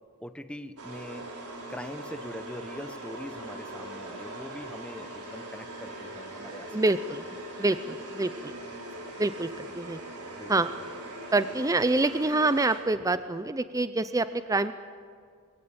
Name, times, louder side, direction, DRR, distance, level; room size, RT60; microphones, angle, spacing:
voice 1, 0.2-1.3 1.7-6.8 7.4-7.5 9.1-9.2 9.6-9.7 10.3-10.5 10.8-10.9, equal, 5° left, 10 dB, 0.8 m, -42 dB
sound 1, 0.8-13.1, right 1 dB, 80° right, 3.8 m, -41 dB
voice 2, 6.7-7.2 7.6-8.5 9.2-10.0 10.5-10.7 11.3-14.7, right 2 dB, 15° right, 12 dB, 0.5 m, -26 dB
22.0 x 16.5 x 8.6 m, 2.1 s
head